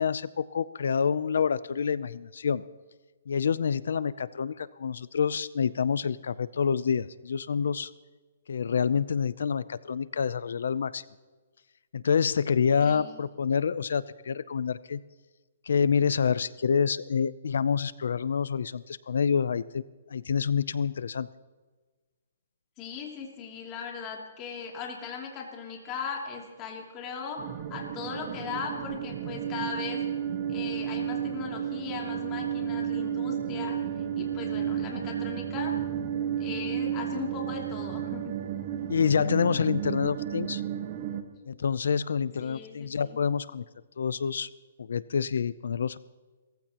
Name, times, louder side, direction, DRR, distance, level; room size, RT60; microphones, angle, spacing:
voice 1, 0.0-2.6 3.3-7.9 8.5-11.0 11.9-15.0 15.7-19.8 20.1-21.3 38.9-40.6 41.5-43.6 44.0-44.5 44.8-46.0, left 6 dB, 75° left, 18 dB, 0.5 m, -27 dB
voice 2, 12.8-13.2 22.8-30.0 30.5-33.8 34.2-35.7 36.4-38.3 42.4-43.2, left 6 dB, 20° left, 0 dB, 2.8 m, -38 dB
sound 1, 27.4-41.2, right 9 dB, 35° right, 1.3 m, -32 dB
28.5 x 15.0 x 3.0 m, 1.3 s
hypercardioid pair, 165°, 0 cm